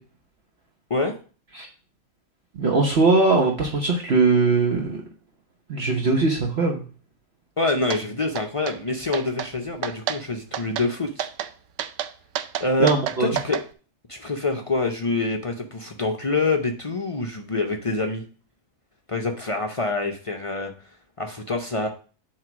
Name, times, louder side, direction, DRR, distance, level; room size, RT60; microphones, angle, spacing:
voice 1, 2.5-5.0 5.7-6.8 12.8-13.4, right 3 dB, 50° right, 0 dB, 1.2 m, -20 dB
voice 2, 7.6-11.3 12.6-12.9 13.2-13.6 14.1-18.2 19.1-20.7 21.2-21.9, left 3 dB, 45° left, 3 dB, 0.4 m, -26 dB
sound 1, 7.9-8.0 8.4-8.8 9.1-9.5 9.8-10.2 10.5-10.9 11.2-11.5 11.8-13.6, right 10 dB, 65° right, 0.8 m, -29 dB
7.6 x 3.3 x 6.0 m, 0.39 s
omnidirectional pair, 1.5 m